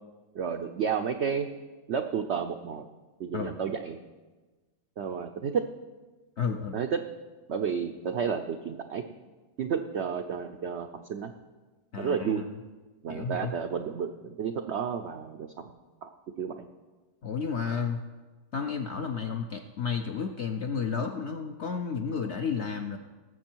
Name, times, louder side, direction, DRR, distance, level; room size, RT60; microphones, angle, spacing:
voice 1, 0.3-1.5 1.9-2.8 3.2-4.0 5.0-5.6 6.7-7.0 7.5-9.0 9.6-11.3 12.0-12.4 13.0-15.7 16.0-16.1 16.4-16.6, right 7 dB, 80° right, 6 dB, 0.6 m, -31 dB
voice 2, 6.4-6.8 11.9-12.5 13.1-13.5 17.2-18.0 18.5-23.0, left 6 dB, 65° left, 4 dB, 0.7 m, -32 dB
18.5 x 7.4 x 4.5 m, 1.3 s
omnidirectional pair, 1.8 m